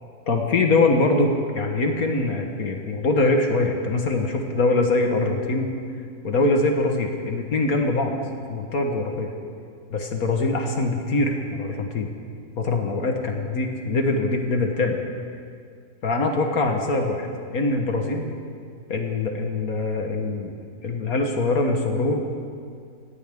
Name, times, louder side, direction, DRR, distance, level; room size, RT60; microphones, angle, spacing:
voice 1, 0.3-5.7 6.2-8.1 8.5-9.3 9.9-12.1 12.6-15.0 16.0-17.2 17.5-18.3 18.9-20.5 20.8-22.4, left 2 dB, 65° left, 3 dB, 1.8 m, -23 dB
18.5 x 17.5 x 3.7 m, 2.2 s
omnidirectional pair, 1.7 m